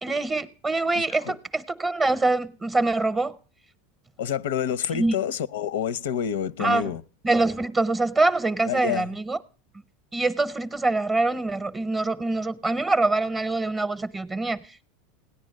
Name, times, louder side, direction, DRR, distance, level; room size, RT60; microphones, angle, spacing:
voice 1, 0.0-3.4 4.9-5.2 6.6-7.0 7.2-9.4 10.1-14.8, right 2 dB, 15° right, 0.6 m, -24 dB
voice 2, 1.0-1.3 4.2-7.0 8.7-9.1, left 9 dB, 85° left, 0.6 m, -28 dB
17.5 x 10.5 x 6.4 m
supercardioid pair, 140°, 0 cm